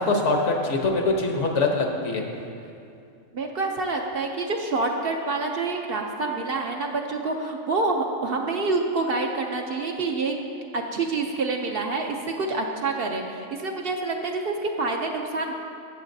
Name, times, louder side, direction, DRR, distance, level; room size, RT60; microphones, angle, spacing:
voice 1, 0.0-2.2, left 3 dB, 70° left, 2 dB, 1.2 m, -23 dB
voice 2, 3.3-10.3 10.7-15.6, right 3 dB, 60° right, 2 dB, 0.7 m, -27 dB
13.5 x 8.0 x 2.7 m, 2.6 s
omnidirectional pair, 1.3 m